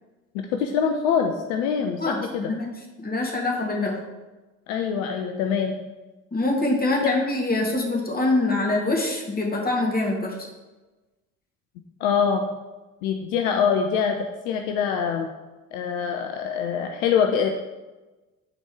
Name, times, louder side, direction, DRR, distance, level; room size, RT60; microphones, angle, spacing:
voice 1, 0.3-2.5 4.7-5.8 12.0-12.5 13.0-14.2 14.5-15.3 15.7-17.5, left 7 dB, 65° left, 4 dB, 0.8 m, -24 dB
voice 2, 2.0-2.7 3.0-4.0 6.3-10.3, left 2 dB, 20° left, -1 dB, 2.4 m, -24 dB
9.8 x 4.5 x 4.7 m, 1.2 s
figure-of-eight pair, 55°, 43 cm